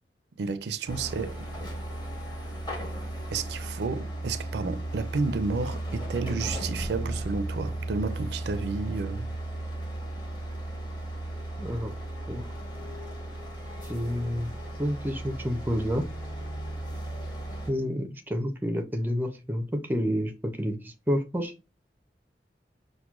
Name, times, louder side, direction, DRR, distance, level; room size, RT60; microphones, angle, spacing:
voice 1, 0.4-1.5 3.3-9.3, right 4 dB, 70° right, 0.4 m, -31 dB
sound 1, 0.9-17.7, right 1 dB, 25° left, 0.9 m, -35 dB
voice 2, 11.6-11.9 12.3-12.4 13.8-14.5 14.8-16.1 17.7-20.3 20.6-21.5, equal, 10° right, 0.4 m, -29 dB
5.8 x 2.1 x 2.3 m
head